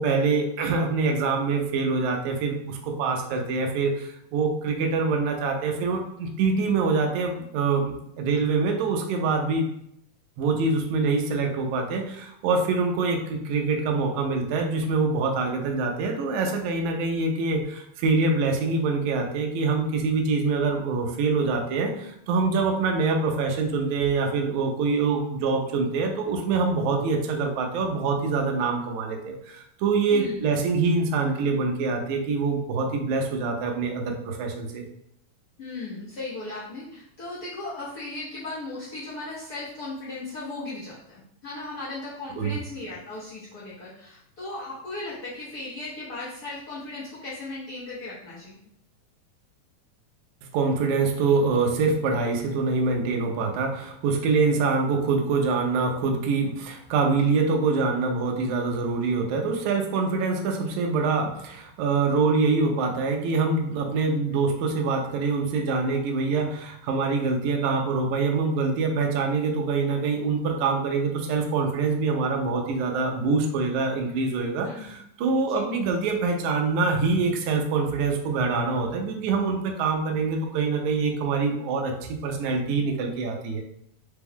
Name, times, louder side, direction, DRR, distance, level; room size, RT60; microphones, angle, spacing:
voice 1, 0.0-9.7 10.4-34.9 42.4-42.6 50.5-83.6, right 4 dB, 75° right, 2 dB, 1.8 m, -25 dB
voice 2, 30.1-30.4 35.6-48.6 74.6-74.9 75.5-75.6, left 2 dB, 70° left, -11 dB, 0.9 m, -37 dB
5.2 x 2.3 x 3.4 m, 0.74 s
omnidirectional pair, 3.8 m